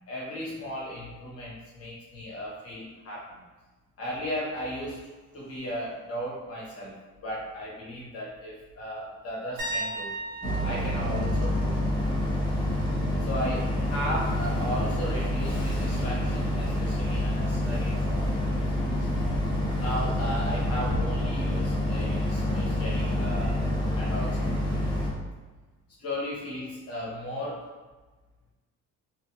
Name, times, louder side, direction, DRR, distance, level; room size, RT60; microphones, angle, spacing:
voice 1, 0.1-3.4 4.0-10.1 10.6-11.8 13.2-18.7 19.8-23.6 23.9-24.9 26.0-27.6, equal, 45° left, -5 dB, 0.8 m, -36 dB
sound 1, 9.6-13.3 13.7-14.0 16.9-17.0, right 1 dB, 80° right, 1.0 m, -38 dB
Boat Water vehicle, 10.4-25.1, left 1 dB, 15° left, 0.7 m, -27 dB
2.7 x 2.5 x 2.6 m, 1.3 s
cardioid pair, 135°, 32 cm